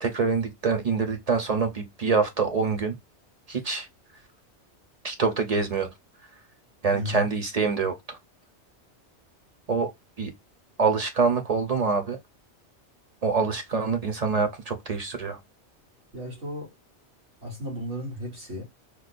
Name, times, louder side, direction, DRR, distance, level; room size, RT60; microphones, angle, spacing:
voice 1, 0.0-3.0 3.5-3.9 5.0-5.9 6.8-8.2 9.7-9.9 10.2-10.3 10.8-12.2 13.2-15.4, right 4 dB, 45° right, 0.6 m, -25 dB
voice 2, 6.9-7.3 16.1-16.7 17.4-18.6, equal, 90° right, 3.0 m, -34 dB
4.4 x 2.2 x 2.5 m
omnidirectional pair, 1.2 m